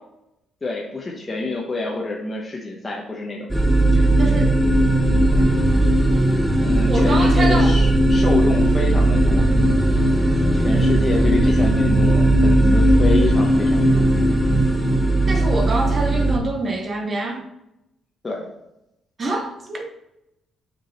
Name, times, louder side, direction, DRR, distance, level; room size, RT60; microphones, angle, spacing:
voice 1, 0.6-3.5 6.6-9.5 10.5-14.0 18.2-18.4, left 3 dB, 25° left, -2 dB, 1.1 m, -27 dB
sound 1, 3.5-16.4, right 1 dB, 5° right, 1.0 m, -17 dB
voice 2, 3.9-4.5 5.3-5.6 6.9-7.7 15.3-17.4 19.2-19.9, right 2 dB, 40° right, 3 dB, 1.0 m, -26 dB
6.2 x 4.7 x 4.2 m, 0.86 s
cardioid pair, 90°, 0 cm